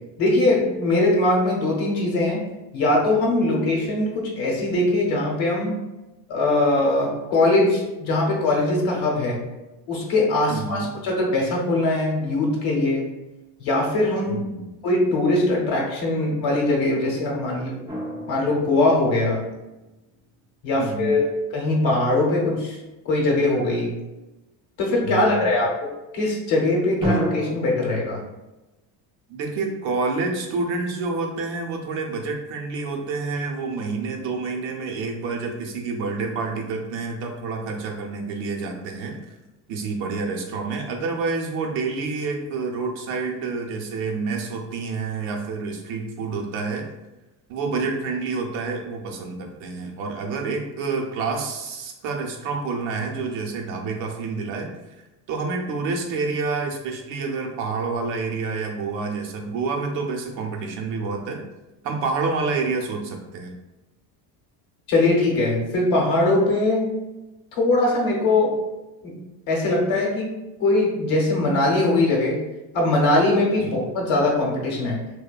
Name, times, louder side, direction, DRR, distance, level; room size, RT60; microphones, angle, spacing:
voice 1, 0.2-2.4 2.7-5.7 6.3-9.4 9.9-13.1 13.6-14.4 14.8-17.7 18.3-19.4 20.6-21.2 21.5-22.8 23.0-23.9 24.8-25.7 26.1-28.2 64.9-66.9 67.6-68.5 69.0-69.2 69.5-70.3 70.6-72.4 72.7-75.0, left 2 dB, 65° left, -2 dB, 0.8 m, -21 dB
voice 2, 10.5-10.9 14.3-14.7 20.7-21.2 25.0-25.5 29.3-39.3 39.7-46.9 47.5-54.7 55.3-61.4 61.8-63.5 73.6-73.8, right 4 dB, 65° right, 1 dB, 0.7 m, -28 dB
sound 1, 17.9-20.0 27.0-27.7, equal, 10° right, 0.3 m, -29 dB
2.7 x 2.1 x 2.3 m, 1.0 s
supercardioid pair, 95°, 50 cm